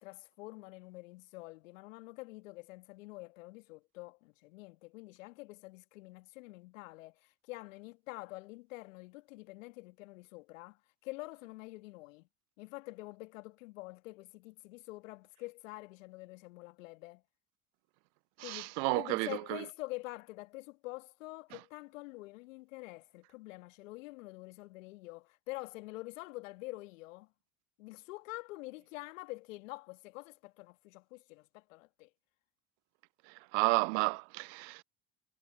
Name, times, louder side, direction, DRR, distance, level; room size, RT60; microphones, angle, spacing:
voice 1, 0.0-12.3 12.6-17.2 18.4-27.3 27.8-32.1, left 22 dB, 70° left, 2.0 m, -47 dB
voice 2, 18.4-19.6 33.3-34.8, right 37 dB, 55° right, 0.4 m, -32 dB
figure-of-eight pair, 60°, 40 cm